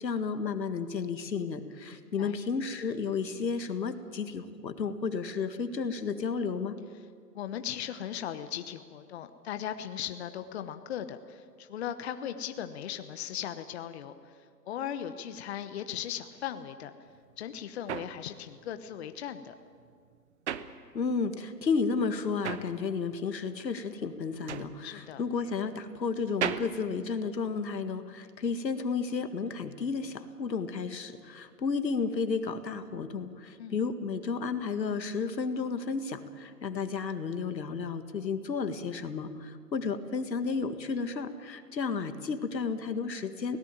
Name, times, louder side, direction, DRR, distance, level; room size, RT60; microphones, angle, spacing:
voice 1, 0.0-6.8 20.9-43.6, left 5 dB, 90° left, 9 dB, 1.9 m, -32 dB
voice 2, 1.9-2.4 7.3-14.3 14.7-16.9 17.4-19.5 24.8-25.2 33.6-33.8, left 10 dB, 40° left, 9 dB, 1.1 m, -38 dB
sound 1, 17.1-21.4 21.7-27.9, right 9 dB, 45° right, 1.0 m, -39 dB
23.0 x 18.0 x 9.1 m, 2.1 s
hypercardioid pair, 150°, 49 cm